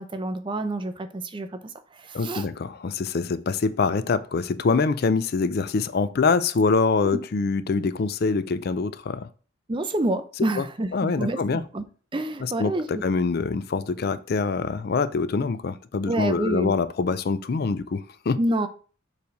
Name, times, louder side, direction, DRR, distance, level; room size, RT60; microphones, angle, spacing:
voice 1, 0.0-2.5 7.1-7.2 9.7-11.8 12.1-13.0 16.1-16.7 18.4-18.7, right 1 dB, 25° right, 0.5 m, -28 dB
voice 2, 2.1-9.3 10.6-10.7 10.9-11.6 12.4-18.4, left 4 dB, 50° left, 0.4 m, -25 dB
6.9 x 3.2 x 5.2 m
head